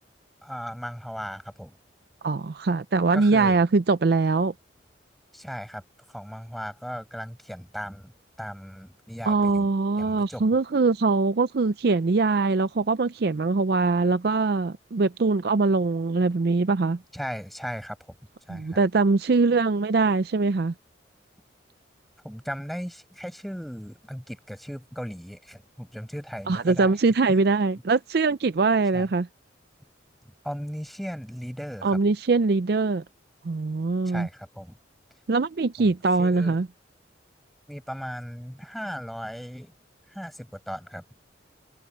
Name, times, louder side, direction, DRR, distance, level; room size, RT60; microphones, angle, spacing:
voice 1, 0.4-1.8 3.1-3.6 5.3-5.8 6.1-8.1 8.4-9.7 10.0-10.4 17.1-18.0 18.5-18.8 22.2-27.0 27.3-27.4 28.9-29.1 30.4-32.0 34.0-34.8 35.8-35.9 36.2-36.6 37.7-39.7 40.1-41.0, equal, ahead, 7.4 m, -37 dB
voice 2, 2.2-4.5 9.2-17.0 18.5-20.7 26.5-29.3 31.8-33.0 33.4-34.3 35.3-36.7, right 3 dB, 55° right, 0.5 m, -22 dB
head